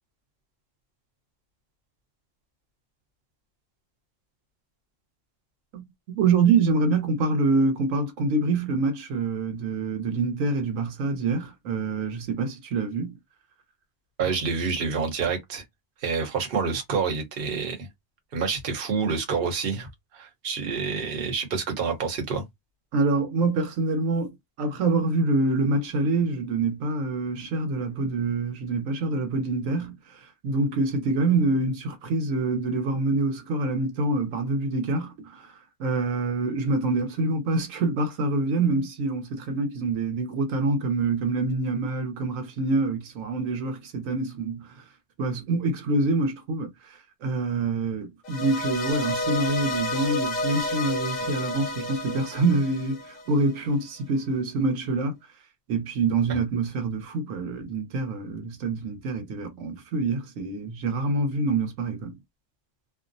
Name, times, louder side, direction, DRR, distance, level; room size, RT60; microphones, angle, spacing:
voice 1, 5.7-13.2 22.9-44.8 45.2-55.2 55.7-62.2, right 3 dB, 90° right, 1.1 m, -26 dB
voice 2, 14.2-15.6 16.0-17.9 18.3-19.9 20.1-22.4 56.3-56.4, right 5 dB, 50° right, 1.0 m, -28 dB
sound 1, 48.2-53.5, left 2 dB, 50° left, 0.5 m, -30 dB
2.7 x 2.0 x 2.6 m
omnidirectional pair, 1.3 m